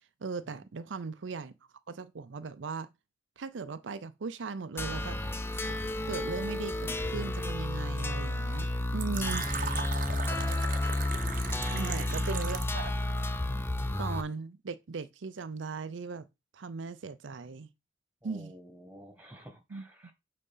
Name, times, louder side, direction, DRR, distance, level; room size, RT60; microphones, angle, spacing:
voice 1, 0.2-1.5 1.9-2.9 3.4-5.2 5.5-5.8 6.1-9.5 11.7-12.9 14.0-16.3 16.5-17.7 18.2-18.5 19.7-20.1, right 4 dB, 85° right, 0.5 m, -38 dB
sound 1, 4.8-14.2, left 1 dB, 10° left, 0.5 m, -32 dB
Fill (with liquid), 9.0-12.8, right 6 dB, 45° right, 0.8 m, -38 dB
voice 2, 18.2-20.1, equal, 10° right, 1.8 m, -52 dB
6.7 x 3.7 x 5.4 m
head